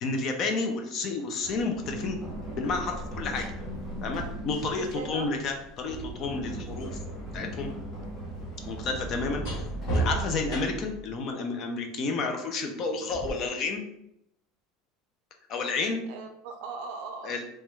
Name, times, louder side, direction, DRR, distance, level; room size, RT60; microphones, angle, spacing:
voice 1, 0.0-2.2 2.6-3.5 4.0-7.0 7.3-7.7 8.7-13.8 15.5-16.0 17.2-17.4, left 3 dB, 35° left, 4 dB, 0.4 m, -31 dB
Run, 1.4-11.1, right 1 dB, 10° left, 1.4 m, -38 dB
sound 1, 1.7-1.9 3.0-7.0 7.3-11.0 13.1-13.3, right 3 dB, 55° left, 1.3 m, -36 dB
voice 2, 4.8-5.3 15.8-17.4, right 5 dB, 65° right, 5 dB, 0.5 m, -40 dB
3.0 x 2.2 x 3.1 m, 0.78 s
cardioid pair, 170°, 0 cm